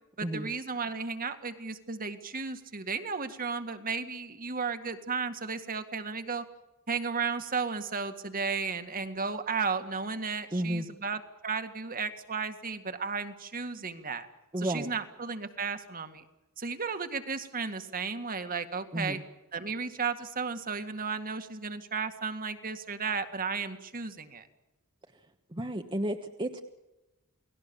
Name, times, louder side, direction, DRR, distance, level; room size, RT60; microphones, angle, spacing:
voice 1, 0.2-6.4 6.9-14.3 14.6-16.2 16.6-19.2 19.5-24.5, right 5 dB, 40° right, 8 dB, 2.0 m, -34 dB
voice 2, 10.5-10.9 14.5-14.9 18.9-19.2 25.5-26.6, right 1 dB, 20° right, 4 dB, 1.2 m, -32 dB
29.5 x 19.0 x 7.1 m, 0.99 s
head